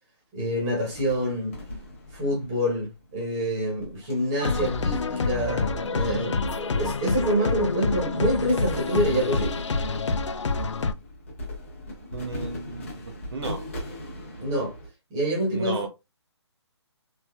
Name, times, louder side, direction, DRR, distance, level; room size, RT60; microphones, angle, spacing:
voice 1, 0.3-1.5 2.1-9.5 14.4-14.7 15.1-15.9, equal, 10° right, 0.5 m, -26 dB
sound 1, 0.9-3.2 3.8-6.3 6.8-7.6 7.9-14.9, left 1 dB, 30° left, 0.7 m, -40 dB
sound 2, 4.4-10.9, left 4 dB, 80° left, 0.4 m, -27 dB
voice 2, 12.1-13.6 15.5-15.9, right 3 dB, 55° right, 0.6 m, -34 dB
3.2 x 2.5 x 2.2 m
hypercardioid pair, 175°, 15 cm